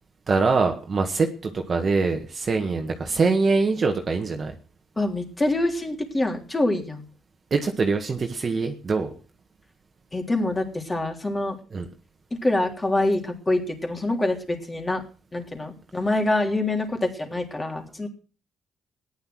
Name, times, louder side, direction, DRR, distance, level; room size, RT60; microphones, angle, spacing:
voice 1, 0.3-4.5 7.5-9.1 11.7-11.8, right 4 dB, 40° right, 4 dB, 1.7 m, -23 dB
voice 2, 5.0-7.0 10.1-11.6 12.3-15.0 15.3-18.1, left 2 dB, 20° left, 3 dB, 3.4 m, -25 dB
14.0 x 10.5 x 6.3 m, 0.38 s
cardioid pair, 90°, 0 cm